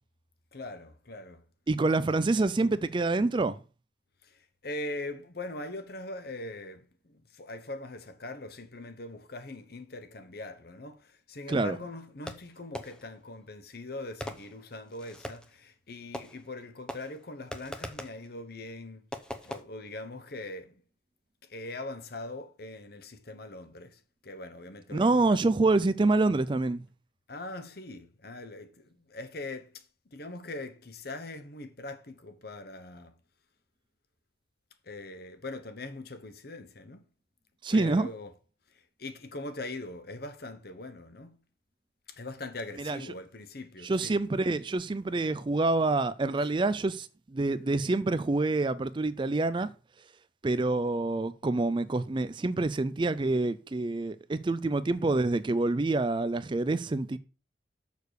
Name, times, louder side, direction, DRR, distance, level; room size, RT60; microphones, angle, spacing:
voice 1, 0.5-1.4 4.2-19.1 19.4-20.8 21.4-25.5 27.3-29.9 30.1-33.1 34.8-37.0 37.7-38.3 38.7-41.4 42.1-44.1, left 2 dB, 55° left, 1.0 m, -42 dB
voice 2, 1.7-3.6 11.5-11.8 24.9-26.8 37.6-38.1 42.8-43.0 43.8-49.7 50.4-57.2, right 2 dB, 25° right, 0.4 m, -27 dB
Fireworks, 12.3-13.2 14.2-15.6 16.1-16.6 16.9-18.3 19.1-19.6, left 1 dB, 5° left, 0.7 m, -41 dB
6.6 x 6.6 x 4.8 m
head